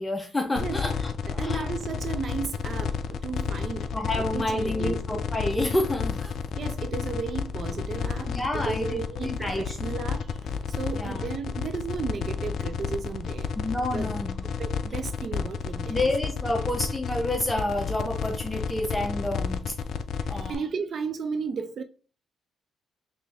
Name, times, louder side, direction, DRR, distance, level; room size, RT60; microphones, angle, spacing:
voice 1, 0.0-1.7 3.9-6.4 8.3-9.8 10.9-11.2 13.6-14.4 15.9-19.8 20.3-20.6, left 1 dB, 10° left, 0.6 m, -29 dB
sound 1, 0.6-20.6, left 6 dB, 65° left, 0.4 m, -31 dB
voice 2, 1.3-3.9 4.2-5.0 6.6-13.5 13.9-14.1 14.6-16.1 20.2-21.8, right 5 dB, 50° right, 0.4 m, -34 dB
3.4 x 2.5 x 3.2 m
cardioid pair, 90°, 0 cm